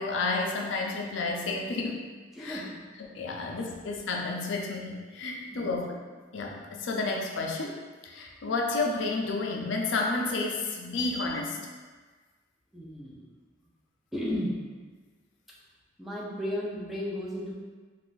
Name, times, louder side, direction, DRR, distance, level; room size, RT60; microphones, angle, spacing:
voice 1, 0.0-2.0 2.4-2.6 3.1-6.0 6.3-7.8 8.0-11.6, left 3 dB, 70° left, 0 dB, 0.4 m, -31 dB
voice 2, 2.3-2.8 3.4-3.5 5.5-5.7 12.7-13.3 14.1-14.6 16.0-17.6, equal, ahead, -6 dB, 0.4 m, -34 dB
2.4 x 2.4 x 3.8 m, 1.4 s
head